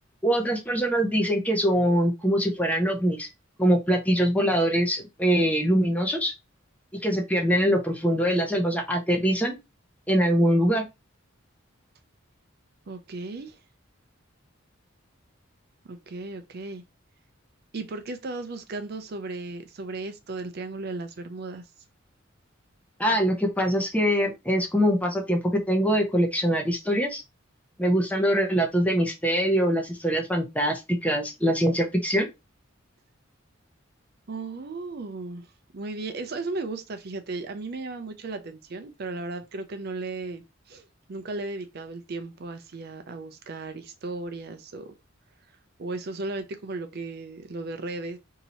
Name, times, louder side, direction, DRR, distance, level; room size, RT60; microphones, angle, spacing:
voice 1, 0.2-3.3 3.6-6.3 7.0-9.6 10.1-10.8 23.0-27.2 27.8-32.3, equal, 5° left, 0.7 m, -23 dB
voice 2, 12.9-13.6 15.8-16.8 17.7-21.7 34.3-44.9 45.8-48.2, right 3 dB, 50° right, 0.5 m, -35 dB
2.8 x 2.8 x 4.1 m
head